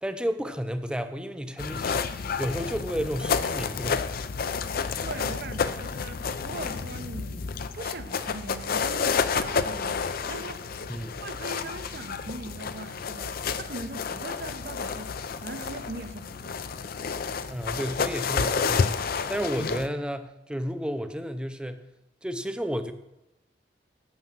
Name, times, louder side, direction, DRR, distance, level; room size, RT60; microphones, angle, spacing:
voice 1, 0.0-4.0 10.9-11.2 17.5-21.8 22.2-22.9, equal, 5° right, 0.6 m, -32 dB
sound 1, 1.6-19.9, left 5 dB, 55° left, 0.5 m, -30 dB
voice 2, 5.0-15.1 15.4-16.6, right 2 dB, 60° right, 0.8 m, -41 dB
9.3 x 7.6 x 6.0 m
head